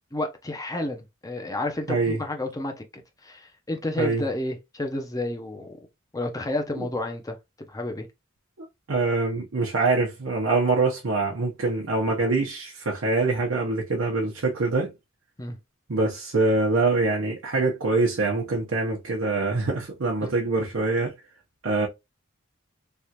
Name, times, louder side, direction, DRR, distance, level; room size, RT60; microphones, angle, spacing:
voice 1, 0.1-5.8 6.1-7.4 7.7-8.1 15.4-15.6 20.2-20.3, left 2 dB, 20° left, 0.7 m, -31 dB
voice 2, 1.9-2.2 4.0-4.2 6.8-6.9 8.6-14.9 15.9-21.1 21.6-21.9, right 3 dB, 75° right, 0.8 m, -24 dB
3.4 x 2.4 x 2.8 m
head